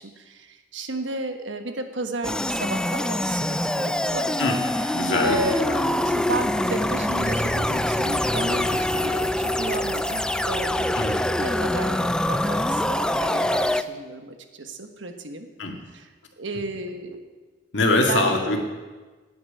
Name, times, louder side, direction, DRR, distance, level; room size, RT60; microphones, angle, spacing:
voice 1, 0.0-5.7 6.0-11.0 11.2-15.5 15.9-16.1 16.4-17.3 18.0-18.4, right 2 dB, 75° right, 6 dB, 1.3 m, -33 dB
sound 1, 2.2-13.8, left 1 dB, 5° left, 0.4 m, -24 dB
voice 2, 4.9-5.8 10.9-11.2 15.6-15.8 17.7-18.6, left 2 dB, 70° left, 2 dB, 2.0 m, -23 dB
9.5 x 8.8 x 9.8 m, 1.3 s
head